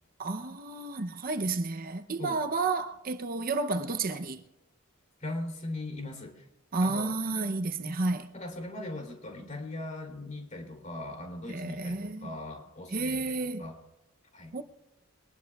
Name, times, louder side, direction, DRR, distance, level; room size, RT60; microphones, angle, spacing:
voice 1, 0.2-4.4 6.7-8.3 11.5-12.3 12.9-13.7 14.5-14.6, right 3 dB, 40° right, 0.7 m, -31 dB
voice 2, 5.2-6.5 6.8-7.2 7.8-8.0 8.3-13.8 14.3-14.6, left 2 dB, 35° left, 3.1 m, -39 dB
22.5 x 19.0 x 2.3 m
head